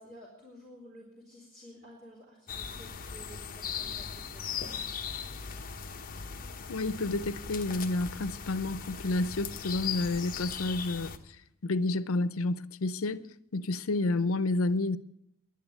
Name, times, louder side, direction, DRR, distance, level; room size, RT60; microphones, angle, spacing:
voice 1, 0.0-5.0, equal, 35° right, 3.7 m, -52 dB
sound 1, 2.5-11.2, left 7 dB, 40° left, 1.0 m, -39 dB
voice 2, 6.7-11.1 11.6-13.3 13.5-15.0, left 2 dB, 75° left, 0.7 m, -30 dB
11.5 x 9.3 x 9.4 m
head